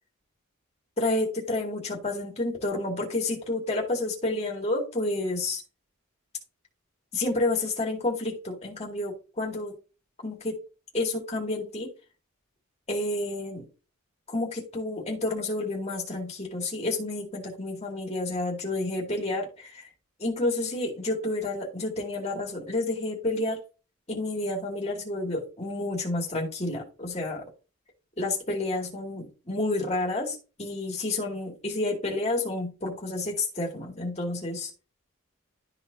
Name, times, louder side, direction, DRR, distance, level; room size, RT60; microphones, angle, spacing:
voice 1, 1.0-5.6 7.1-9.7 10.2-10.6 10.9-11.9 12.9-13.7 14.3-19.9 20.2-23.6 24.1-27.4 28.2-34.7, left 2 dB, 30° left, -1 dB, 2.2 m, -30 dB
12.5 x 4.2 x 2.7 m, 0.33 s
head